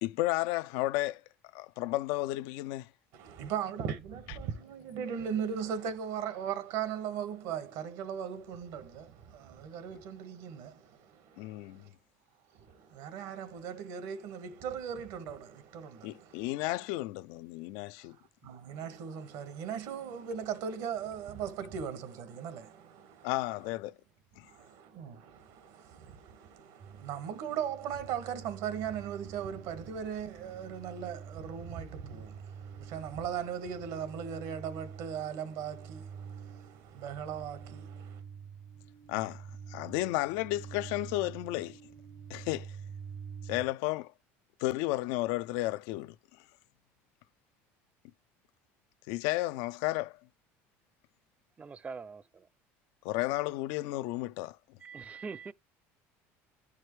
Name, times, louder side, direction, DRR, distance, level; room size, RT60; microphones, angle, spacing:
voice 1, 0.0-1.2 1.5-2.9 11.4-11.8 16.0-18.2 23.2-23.9 24.4-24.5 39.1-41.8 42.3-42.8 43.4-44.1 44.6-46.2 49.1-50.2 53.0-54.6, left 18 dB, 75° left, 0.3 m, -33 dB
voice 2, 3.1-11.9 12.5-16.5 18.0-18.2 18.4-23.3 24.4-38.2, right 8 dB, 70° right, 1.4 m, -38 dB
sound 1, 26.8-43.7, right 7 dB, 55° right, 0.9 m, -47 dB
voice 3, 51.6-52.5 54.8-55.5, right 5 dB, 20° right, 0.3 m, -43 dB
10.5 x 4.7 x 3.1 m
supercardioid pair, 90°, 7 cm